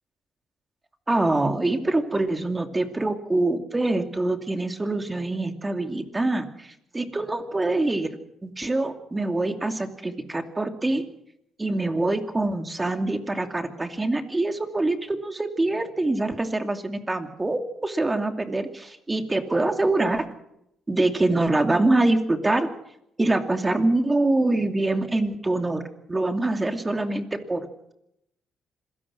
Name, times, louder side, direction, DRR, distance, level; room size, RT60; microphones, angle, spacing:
voice 1, 1.1-8.1 8.4-11.0 11.6-20.3 20.9-22.7 23.2-25.8 26.1-27.6, right 2 dB, 20° right, 7 dB, 2.6 m, -24 dB
26.5 x 17.5 x 6.2 m, 0.79 s
cardioid pair, 90°, 0 cm